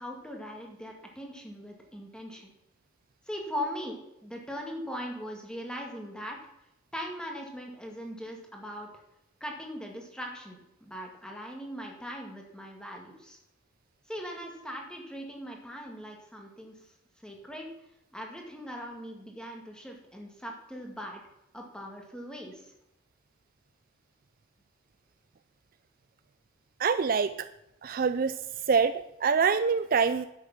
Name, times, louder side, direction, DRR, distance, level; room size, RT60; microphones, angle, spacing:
voice 1, 0.0-2.5 3.3-6.4 6.9-8.9 9.4-13.4 14.1-16.9 17.2-17.7 18.1-21.2 21.5-22.7, equal, 5° left, 1 dB, 2.1 m, -40 dB
voice 2, 26.8-27.3 27.8-28.4 28.7-30.3, right 5 dB, 45° right, 12 dB, 0.4 m, -25 dB
11.5 x 8.3 x 6.1 m, 0.87 s
head